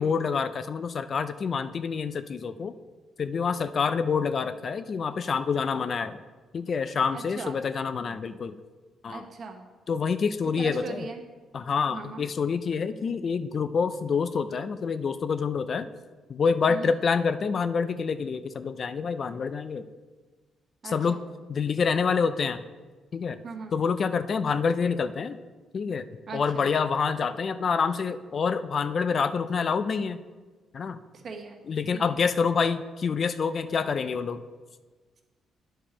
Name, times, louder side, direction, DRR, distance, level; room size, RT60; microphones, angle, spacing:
voice 1, 0.0-2.7 3.2-6.2 6.5-8.6 9.0-9.2 9.9-11.1 11.5-15.9 16.3-19.9 20.8-21.2 21.5-22.6 23.1-23.4 23.7-25.4 25.7-26.1 26.3-30.2 30.7-31.0 31.7-34.4, left 5 dB, 50° left, 12 dB, 0.4 m, -27 dB
voice 2, 7.1-7.5 9.1-9.6 10.5-11.2 11.9-12.2 16.7-16.9 20.8-21.2 23.4-23.7 26.3-26.7 31.1-31.6 31.9-32.1, right 4 dB, 50° right, 3 dB, 1.1 m, -39 dB
10.0 x 4.3 x 5.0 m, 1.4 s
cardioid pair, 90°, 0 cm